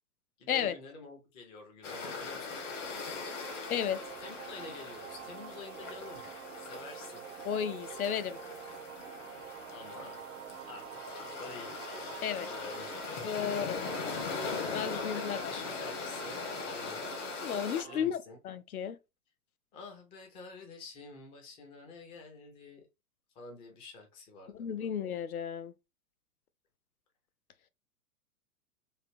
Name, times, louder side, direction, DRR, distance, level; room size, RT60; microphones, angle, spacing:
voice 1, 0.4-3.2 4.2-6.2 6.6-7.2 9.7-10.2 10.7-13.4 14.9-16.4 16.7-17.0 17.9-18.4 19.7-22.8 23.4-24.9, left 3 dB, 10° left, 0.4 m, -49 dB
sound 1, 1.8-17.8, left 4 dB, 55° left, 1.2 m, -40 dB
sound 2, 2.1-18.1, right 11 dB, 60° right, 0.5 m, -47 dB
voice 2, 3.7-4.0 7.4-8.4 12.2-12.5 13.2-13.8 14.7-15.5 17.4-18.2 18.4-19.0 24.5-25.7, left 8 dB, 70° left, 0.5 m, -33 dB
3.3 x 2.6 x 2.5 m
figure-of-eight pair, 110°, 45 cm